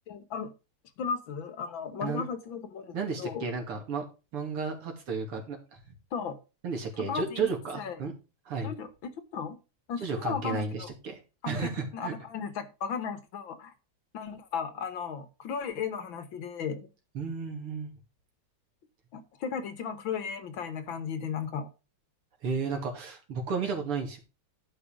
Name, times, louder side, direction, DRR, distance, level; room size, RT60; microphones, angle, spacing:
voice 1, 0.1-0.5 1.0-3.4 6.1-6.4 7.0-7.5 7.7-8.0 8.6-9.6 9.9-10.9 11.4-13.7 14.1-16.9 19.1-21.7, left 6 dB, 65° left, 1.8 m, -35 dB
voice 2, 2.9-4.0 4.3-5.8 6.6-8.1 8.5-8.7 10.0-11.2 11.5-12.1 17.1-17.9 22.4-24.2, right 5 dB, 80° right, 3.4 m, -33 dB
12.0 x 5.5 x 5.0 m
omnidirectional pair, 2.4 m